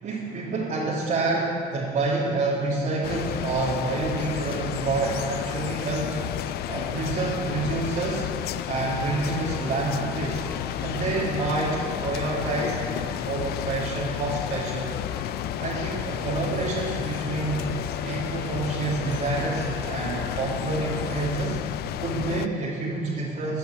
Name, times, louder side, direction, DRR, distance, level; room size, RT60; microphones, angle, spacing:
voice 1, 0.0-6.2 6.7-8.2 8.7-10.4 10.8-14.9 15.6-17.6 18.0-21.6 22.0-23.6, right 3 dB, 50° right, -6 dB, 2.0 m, -28 dB
sound 1, 3.0-22.5, left 12 dB, 70° left, 0.4 m, -32 dB
sound 2, 4.2-21.3, left 1 dB, 15° left, 2.5 m, -42 dB
14.0 x 5.8 x 9.6 m, 2.7 s
cardioid pair, 110°, 17 cm